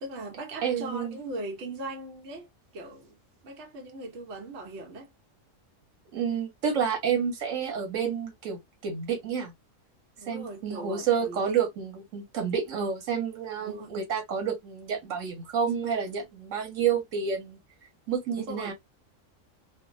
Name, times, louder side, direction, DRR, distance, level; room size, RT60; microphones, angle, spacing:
voice 1, 0.0-3.2 3.4-5.1 10.2-11.6 13.6-14.0 18.3-18.7, right 2 dB, 65° right, 1.0 m, -39 dB
voice 2, 0.6-1.2 6.1-9.5 10.3-17.6 18.1-18.7, right 7 dB, 80° right, 1.2 m, -29 dB
2.5 x 2.1 x 2.5 m
omnidirectional pair, 1.3 m